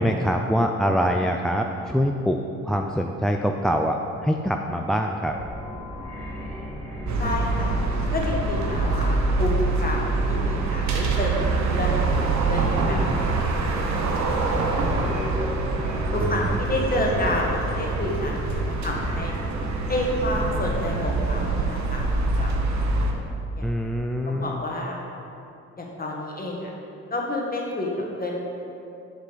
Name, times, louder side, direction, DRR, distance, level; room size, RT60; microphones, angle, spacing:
voice 1, 0.0-5.3 12.9-13.3 16.3-16.6 23.6-24.6, equal, ahead, 3 dB, 0.4 m, -24 dB
sound 1, 5.3-21.7, equal, 20° right, 2.0 m, -35 dB
voice 2, 6.7-7.7 8.1-9.5 9.8-11.3 11.6-13.0 13.4-14.4 14.9-15.5 16.1-19.3 19.9-23.0 23.6-23.7 24.3-25.0 25.8-26.7 27.1-27.9 28.2-28.4, left 1 dB, 30° left, -2 dB, 1.8 m, -30 dB
sound 2, 7.1-23.1, right 3 dB, 65° right, 1.1 m, -25 dB
7.6 x 6.6 x 5.1 m, 2.7 s
cardioid pair, 90°, 30 cm